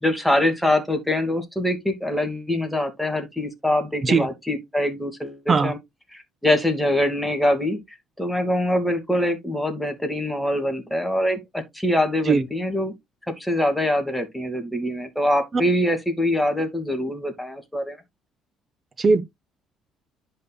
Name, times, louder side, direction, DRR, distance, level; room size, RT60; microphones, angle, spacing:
voice 1, 0.0-5.8 6.1-7.8 8.2-13.0 13.4-18.0, left 1 dB, 5° left, 2.5 m, -24 dB
voice 2, 4.0-4.3 5.5-5.7 12.3-12.4 15.5-15.6 19.0-19.2, right 4 dB, 35° right, 1.1 m, -19 dB
10.5 x 5.5 x 2.4 m
supercardioid pair, 80°, 0 cm